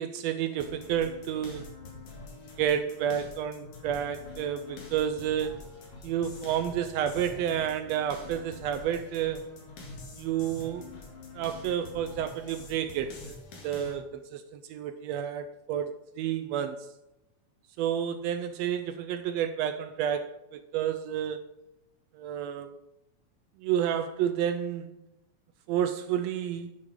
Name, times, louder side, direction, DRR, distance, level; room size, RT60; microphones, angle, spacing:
voice 1, 0.0-1.7 2.6-5.6 6.0-9.5 10.2-10.8 11.3-13.4 13.6-16.8 17.8-21.4 22.2-22.7 23.6-24.9 25.7-26.7, right 9 dB, 80° right, 10 dB, 1.5 m, -30 dB
sound 1, 0.6-13.9, left 3 dB, 75° left, 3.3 m, -46 dB
9.6 x 7.0 x 4.7 m, 0.90 s
omnidirectional pair, 3.4 m